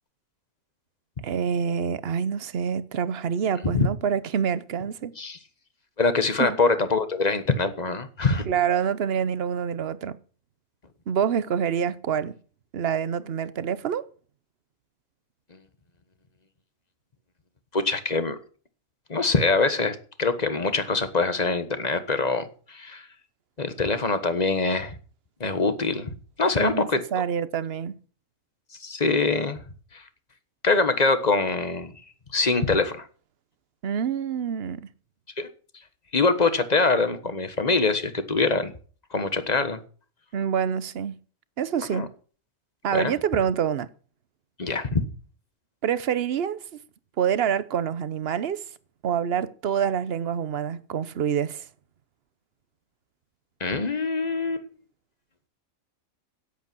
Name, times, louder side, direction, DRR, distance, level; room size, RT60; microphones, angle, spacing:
voice 1, 1.2-5.1 6.4-6.6 8.5-10.2 11.1-12.4 12.7-14.1 26.6-28.0 33.8-34.9 40.3-41.2 41.6-42.0 42.8-43.9 45.8-46.6 47.2-48.6 49.0-51.7, right 8 dB, 50° right, 0.9 m, -26 dB
voice 2, 6.0-8.5 17.7-18.4 19.1-23.1 23.6-25.0 25.4-26.1 26.4-27.0 28.8-29.6 29.9-30.0 30.6-31.9 32.3-33.1 35.4-35.5 36.1-38.7 39.1-39.8 41.9-42.1 42.9-43.1 44.6-45.1 53.6-54.6, left 3 dB, 30° left, 1.3 m, -24 dB
17.0 x 8.3 x 6.1 m
omnidirectional pair, 1.4 m